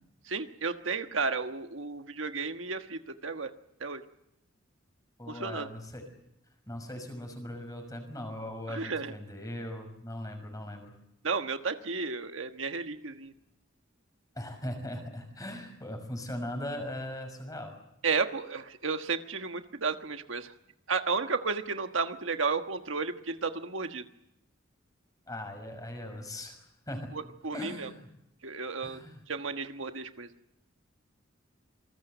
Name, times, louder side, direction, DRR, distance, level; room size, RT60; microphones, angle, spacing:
voice 1, 0.3-3.5 3.8-4.0 5.3-5.7 8.7-9.1 11.2-13.3 18.0-20.5 20.9-24.0 27.1-27.9 28.4-29.0 29.3-30.3, right 4 dB, 85° right, 7 dB, 1.4 m, -33 dB
voice 2, 5.2-6.1 6.7-10.9 14.3-17.7 25.3-26.6 26.9-27.1 27.5-28.1 28.8-29.2, left 1 dB, 20° left, 5 dB, 6.1 m, -39 dB
27.5 x 20.5 x 8.1 m, 0.81 s
head